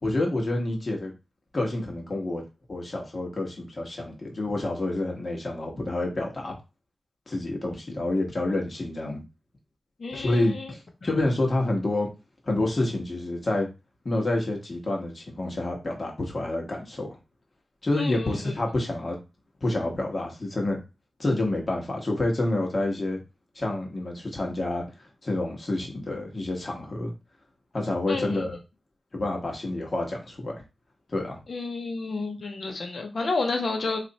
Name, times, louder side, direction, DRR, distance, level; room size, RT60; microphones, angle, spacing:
voice 1, 0.0-1.1 1.5-2.4 2.7-6.5 7.3-9.2 10.1-12.1 12.4-13.7 14.0-17.1 17.8-19.2 19.6-20.8 21.2-23.2 23.5-24.8 25.2-27.1 27.7-28.6 29.1-30.5 31.1-31.4, left 2 dB, 40° left, 1 dB, 1.1 m, -28 dB
voice 2, 10.0-10.7 18.0-18.5 28.1-28.4 31.5-34.0, left 3 dB, 60° left, 3 dB, 0.9 m, -30 dB
3.1 x 2.5 x 4.0 m, 0.27 s
wide cardioid pair, 130°, 0 cm